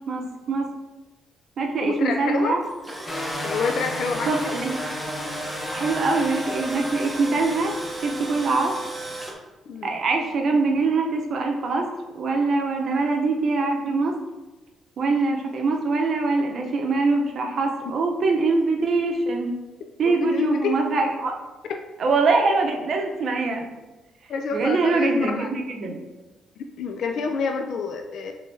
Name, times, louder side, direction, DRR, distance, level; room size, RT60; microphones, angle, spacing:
voice 1, 0.1-0.7 1.6-2.6 4.3-4.7 5.7-8.8 9.8-11.9 12.1-14.2 15.0-19.5 20.0-21.3 22.0-23.6 24.5-26.0, right 3 dB, 50° right, 2 dB, 0.6 m, -23 dB
voice 2, 1.8-2.6 3.4-4.6 9.7-10.0 20.2-20.8 21.6-21.8 24.3-25.7 26.8-28.3, left 4 dB, 65° left, 4 dB, 0.3 m, -28 dB
Tools, 2.6-9.3, right 1 dB, 10° right, 0.7 m, -35 dB
sound 1, 3.1-8.5, left 1 dB, 20° left, 0.8 m, -33 dB
5.5 x 3.2 x 2.6 m, 1.1 s
cardioid pair, 130°, 0 cm